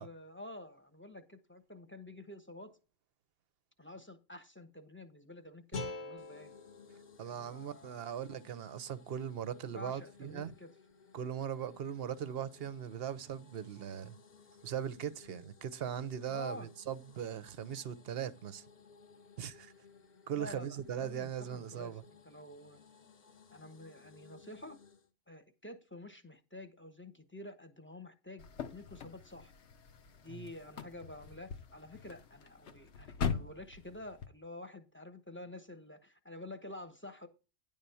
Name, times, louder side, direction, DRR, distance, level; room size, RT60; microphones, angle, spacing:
voice 1, 0.0-2.8 3.8-6.5 7.2-8.2 9.7-10.7 16.3-16.7 20.3-22.8 23.5-24.8 25.3-28.4 28.7-29.5 30.2-37.3, left 1 dB, 10° left, 1.0 m, -49 dB
sound 1, 5.7-8.8, left 3 dB, 90° left, 1.8 m, -45 dB
sound 2, 6.2-25.1, left 5 dB, 40° left, 0.8 m, -60 dB
voice 2, 7.2-10.5 11.1-14.2 14.6-18.6 19.4-19.7 20.3-22.0 30.3-30.5, right 9 dB, 60° right, 0.9 m, -39 dB
sound 3, 28.4-34.3, left 6 dB, 65° left, 1.1 m, -42 dB
10.0 x 3.6 x 6.9 m
omnidirectional pair, 1.3 m